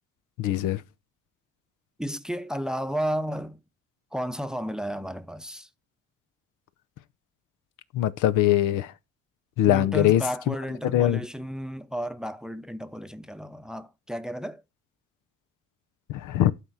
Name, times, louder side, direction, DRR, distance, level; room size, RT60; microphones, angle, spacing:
voice 1, 0.4-0.8 7.9-8.9 9.6-10.5 10.9-11.2 16.1-16.5, left 12 dB, 85° left, 0.7 m, -22 dB
voice 2, 2.0-3.6 4.1-5.7 9.7-14.6, equal, ahead, 0.6 m, -32 dB
11.5 x 4.3 x 4.6 m
cardioid pair, 90°, 30 cm